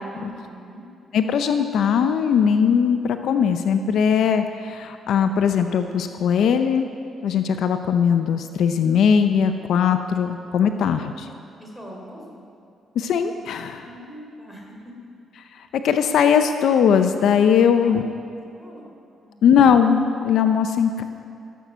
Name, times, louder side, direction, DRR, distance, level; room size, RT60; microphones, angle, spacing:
voice 1, 0.1-0.8 11.6-12.4 13.8-15.1 17.7-18.0 18.5-18.9 19.2-19.4, equal, ahead, -2 dB, 3.4 m, -41 dB
voice 2, 1.1-6.9 7.2-11.3 13.0-13.9 15.7-18.0 19.4-21.0, left 7 dB, 75° left, 8 dB, 0.6 m, -19 dB
15.0 x 8.1 x 6.2 m, 2.5 s
cardioid pair, 90°, 0 cm